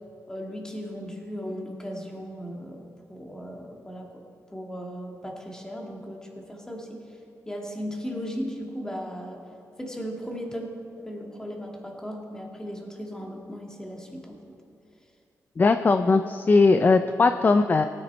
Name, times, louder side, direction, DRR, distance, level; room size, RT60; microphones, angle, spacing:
voice 1, 0.3-4.2 4.5-7.2 7.5-9.4 9.8-14.4 15.8-16.2, equal, 10° left, 0 dB, 2.1 m, -37 dB
voice 2, 15.6-17.8, left 3 dB, 30° left, 9 dB, 0.4 m, -19 dB
18.0 x 9.4 x 4.4 m, 2.5 s
cardioid pair, 95°, 6 cm